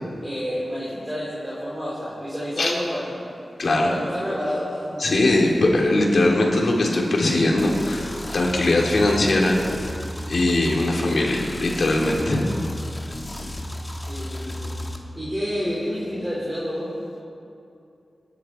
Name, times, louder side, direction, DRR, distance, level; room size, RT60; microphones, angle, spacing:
voice 1, 0.2-3.2 3.8-5.0 14.0-14.7 15.1-16.9, equal, 10° right, -10 dB, 4.7 m, -29 dB
voice 2, 3.6-3.9 5.0-8.1 8.3-9.6 10.3-12.5, left 2 dB, 65° left, -1 dB, 3.0 m, -20 dB
sound 1, 7.6-15.0, left 1 dB, 15° left, 1.5 m, -33 dB
26.5 x 11.0 x 4.5 m, 2.6 s
wide cardioid pair, 115°, 0 cm